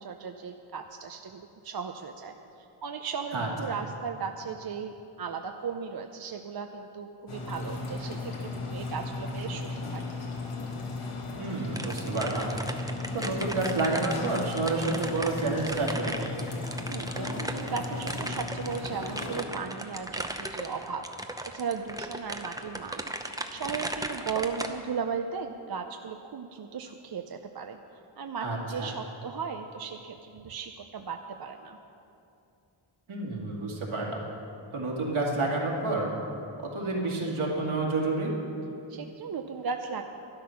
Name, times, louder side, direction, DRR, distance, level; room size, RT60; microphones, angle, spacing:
voice 1, 0.0-2.3 2.8-10.0 16.9-21.1 21.5-23.1 23.5-27.8 28.2-31.8 38.9-40.0, right 5 dB, 50° right, 5 dB, 0.6 m, -36 dB
sound 1, 7.3-19.4, left 3 dB, 75° left, 1.8 m, -36 dB
voice 2, 11.4-12.5 13.1-16.3 28.4-28.9 33.1-34.2 34.7-36.1 36.6-38.3, right 2 dB, 70° right, -2 dB, 2.4 m, -29 dB
sound 2, 11.8-24.7, right 1 dB, 5° right, 0.6 m, -37 dB
12.5 x 11.5 x 5.8 m, 2.7 s
wide cardioid pair, 110°, 50 cm